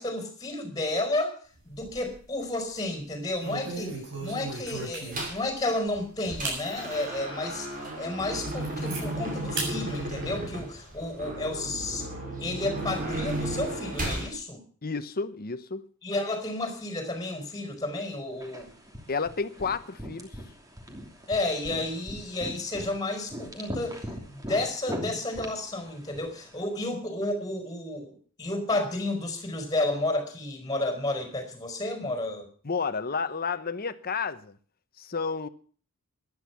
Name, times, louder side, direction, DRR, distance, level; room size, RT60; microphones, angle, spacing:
voice 1, 0.0-1.4 1.6-7.7 8.0-12.1 12.4-14.6 16.0-18.7 21.3-24.0 24.3-32.5, left 2 dB, 15° left, 4.7 m, -31 dB
sound 1, 1.6-2.3 2.6-2.9 3.4-5.5 5.9-6.0 6.4-6.6 7.2-7.3 7.8-7.9 8.2-9.0 9.6-9.7 10.1-11.0, right 3 dB, 60° right, 7.6 m, -36 dB
sound 2, 5.1-5.5 5.9-14.3, right 1 dB, 40° right, 5.8 m, -34 dB
voice 2, 14.8-15.9 19.1-20.4 32.6-34.6 35.0-35.5, left 5 dB, 45° left, 1.0 m, -31 dB
sound 3, 18.4-26.6, equal, 15° right, 2.9 m, -41 dB
15.0 x 11.5 x 5.8 m
head